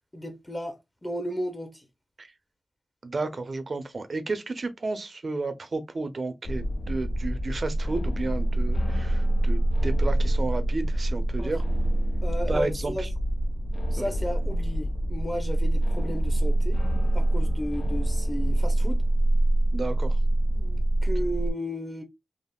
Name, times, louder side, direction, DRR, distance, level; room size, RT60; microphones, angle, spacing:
voice 1, 0.1-1.8 11.4-11.5 12.2-13.1 13.9-16.8 17.1-19.0 20.5-22.0, equal, 15° left, 0.7 m, -34 dB
voice 2, 3.0-11.6 12.5-13.1 14.0-14.1 19.7-20.2, right 3 dB, 55° right, 0.5 m, -32 dB
sound 1, 6.5-21.5, right 1 dB, 65° left, 0.4 m, -25 dB
3.5 x 2.0 x 2.2 m
wide cardioid pair, 85°, 0 cm